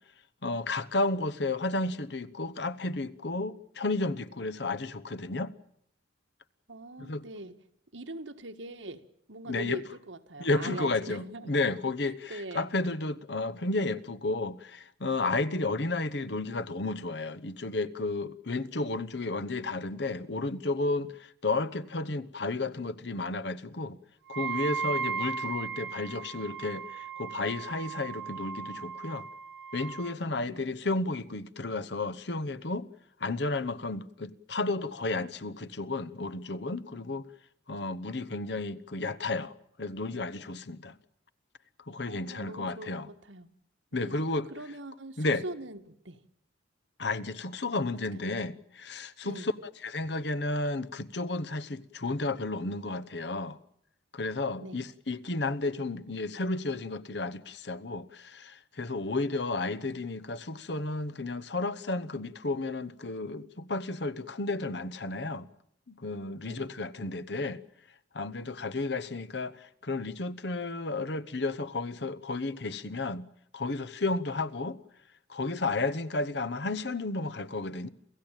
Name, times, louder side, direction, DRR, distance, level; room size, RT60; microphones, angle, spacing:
voice 1, 0.4-5.5 7.0-7.2 9.5-9.8 10.4-24.0 24.3-29.3 29.7-32.9 33.2-37.3 37.7-39.5 39.8-40.9 41.9-43.1 43.9-44.5 45.2-45.4 47.0-49.5 49.8-53.6 54.1-65.5 65.9-67.6 68.1-73.3 73.5-74.8 75.3-77.9, left 2 dB, 65° left, 1.0 m, -32 dB
voice 2, 6.7-7.6 7.9-9.0 9.3-11.5 12.3-12.7 30.3-30.6 42.0-43.5 43.9-44.1 44.5-46.2 48.1-48.2 49.2-49.5 54.6-54.9 66.5-66.7, right 2 dB, 90° right, 1.7 m, -42 dB
Wind instrument woodwind instrument, 24.3-30.1, right 6 dB, 65° right, 1.4 m, -36 dB
28.5 x 15.5 x 9.1 m
head